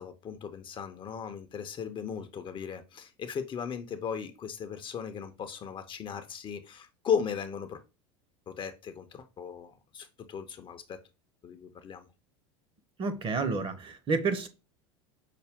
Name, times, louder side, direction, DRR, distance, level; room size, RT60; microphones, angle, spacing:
voice 1, 0.0-7.8 8.5-11.0 11.4-12.1, left 7 dB, 35° left, 0.6 m, -36 dB
voice 2, 13.0-14.5, right 4 dB, 35° right, 0.8 m, -30 dB
5.6 x 2.1 x 3.5 m
hypercardioid pair, 90°, 15 cm